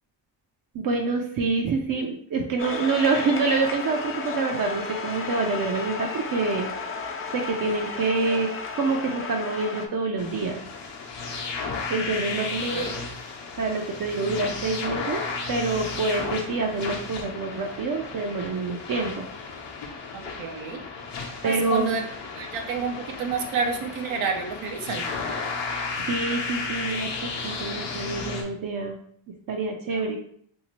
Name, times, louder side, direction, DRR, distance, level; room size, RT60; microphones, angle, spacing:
voice 1, 0.7-6.7 7.3-8.5 8.8-10.6 11.9-12.9 13.5-15.2 15.5-19.3 21.4-22.1 25.6-29.0 29.5-30.2, right 3 dB, 50° right, 2 dB, 0.5 m, -27 dB
sound 1, 2.6-9.9, left 4 dB, 30° left, 0.5 m, -33 dB
sound 2, 10.2-28.4, left 4 dB, 65° left, 0.8 m, -34 dB
voice 2, 20.1-20.8 21.4-22.0 22.4-25.1 30.1-30.2, right 5 dB, 85° right, 3 dB, 0.7 m, -29 dB
3.2 x 2.7 x 2.9 m, 0.64 s
cardioid pair, 90°, 46 cm